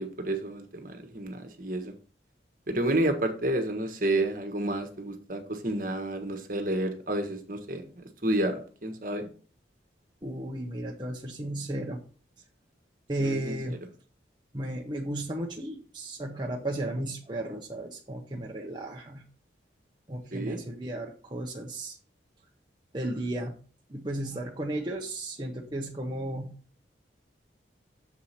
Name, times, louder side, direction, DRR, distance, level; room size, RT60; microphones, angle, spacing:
voice 1, 0.0-1.9 2.7-9.3 13.2-13.6 20.3-20.6, right 1 dB, 45° right, 7 dB, 1.3 m, -30 dB
voice 2, 10.2-12.0 13.1-13.8 14.5-19.2 20.1-22.0 22.9-23.6 23.9-26.6, right 1 dB, 25° right, -1 dB, 0.8 m, -34 dB
7.1 x 4.8 x 5.7 m, 0.40 s
head